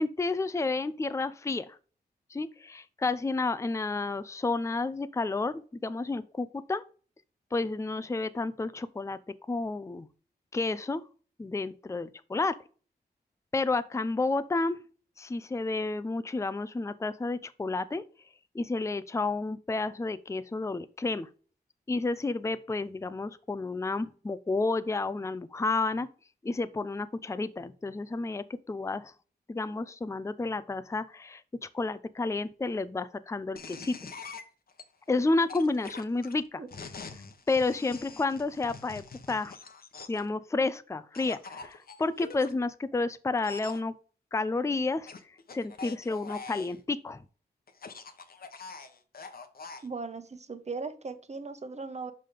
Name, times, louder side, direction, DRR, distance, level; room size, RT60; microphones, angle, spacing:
voice 1, 0.0-1.8 2.3-6.8 7.5-10.1 10.5-11.0 11.4-12.6 13.5-14.8 15.2-18.0 18.5-21.3 21.9-26.1 26.4-29.1 29.5-31.4 31.7-34.0 35.1-36.6 37.5-39.5 40.1-43.9 44.3-45.1 45.5-47.2, left 3 dB, 15° left, 0.5 m, -31 dB
sound 1, 33.6-34.8 35.5-40.3 41.1-42.5 43.4-43.8 45.1-46.8 47.7-49.9, left 4 dB, 55° left, 1.1 m, -45 dB
voice 2, 49.8-52.1, right 4 dB, 40° right, 1.1 m, -38 dB
5.7 x 5.2 x 5.0 m
cardioid pair, 60°, 18 cm